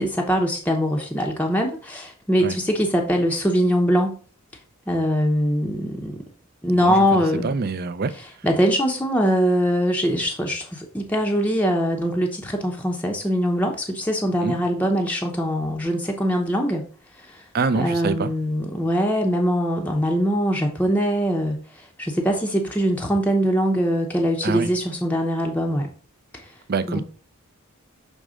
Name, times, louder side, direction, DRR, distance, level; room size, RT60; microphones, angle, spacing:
voice 1, 0.0-4.2 4.9-6.2 6.6-7.5 8.4-16.8 17.2-17.4 17.7-25.9 26.3-26.5 26.9-27.0, equal, 5° left, 0.6 m, -22 dB
voice 2, 6.8-8.1 14.4-14.6 17.5-18.3 24.4-24.7 26.7-27.0, right 4 dB, 45° right, 0.5 m, -25 dB
6.3 x 3.2 x 4.9 m
head